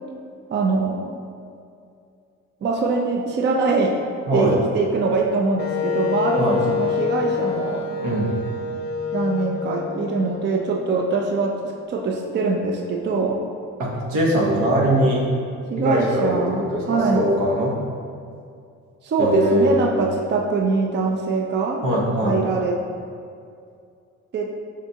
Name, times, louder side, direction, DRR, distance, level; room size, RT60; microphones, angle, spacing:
voice 1, 0.5-1.2 2.6-4.0 4.3-8.0 9.1-11.6 11.9-13.4 15.7-17.3 19.0-21.8 22.2-22.8 24.3-24.5, right 3 dB, 35° right, 2 dB, 0.4 m, -23 dB
voice 2, 4.3-4.6 6.4-6.6 8.0-8.5 13.8-15.2 15.8-16.4 16.7-17.8 19.2-19.9 21.8-22.4, equal, 85° right, -3 dB, 1.0 m, -21 dB
Wind instrument woodwind instrument, 5.6-11.4, left 6 dB, 35° left, 0.5 m, -27 dB
4.8 x 3.4 x 2.7 m, 2.4 s
cardioid pair, 90°, 30 cm